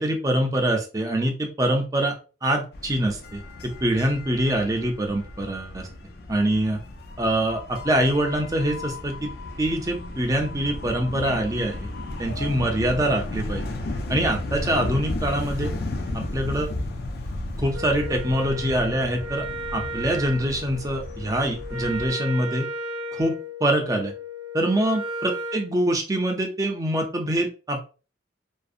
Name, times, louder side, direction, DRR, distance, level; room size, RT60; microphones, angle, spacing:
voice 1, 0.0-2.1 2.4-5.9 6.3-6.8 7.2-9.3 9.6-11.9 12.2-13.6 14.1-15.7 16.1-16.7 17.6-19.4 19.7-22.7 23.1-23.4 23.6-24.1 24.5-27.8, right 1 dB, 20° right, 3 dB, 0.4 m, -24 dB
sound 1, 2.7-22.1, left 2 dB, 55° left, 0.4 m, -34 dB
Wind instrument woodwind instrument, 17.7-25.7, equal, 75° right, 0.7 m, -35 dB
2.6 x 2.0 x 2.4 m, 0.35 s
head